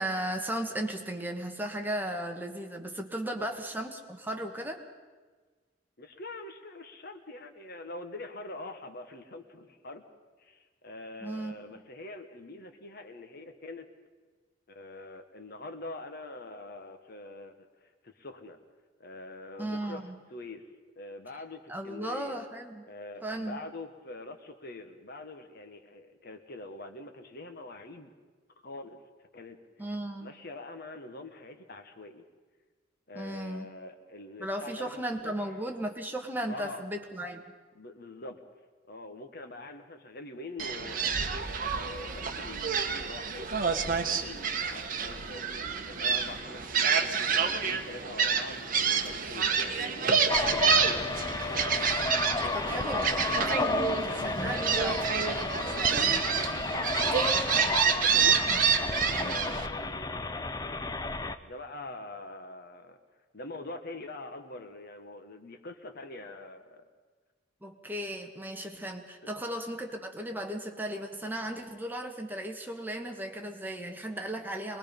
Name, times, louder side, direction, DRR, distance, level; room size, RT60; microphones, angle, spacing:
voice 1, 0.0-4.8 11.2-11.8 19.6-20.2 21.7-22.8 23.2-23.6 29.8-30.3 33.1-33.7 34.4-37.4 52.5-53.3 54.0-55.0 67.6-74.8, right 1 dB, 10° right, 3 dB, 1.4 m, -36 dB
voice 2, 6.0-10.0 10.4-13.9 14.7-18.6 19.0-20.0 20.3-20.6 20.9-22.4 22.9-28.1 28.6-29.0 29.3-29.6 30.2-32.2 33.1-35.3 36.5-36.9 37.7-38.4 38.9-41.4 41.8-43.6 44.0-45.5 45.8-47.1 47.4-51.3 52.4-55.1 55.5-56.3 57.4-58.5 58.9-60.3 61.2-63.0 63.3-66.8 69.2-69.3, left 2 dB, 55° left, 7 dB, 1.5 m, -44 dB
Gull seagull, 40.6-59.7, right 6 dB, 45° right, 1.2 m, -28 dB
sound 1, 50.3-61.4, left 2 dB, 20° left, 0.6 m, -32 dB
23.5 x 20.5 x 5.4 m, 1.4 s
head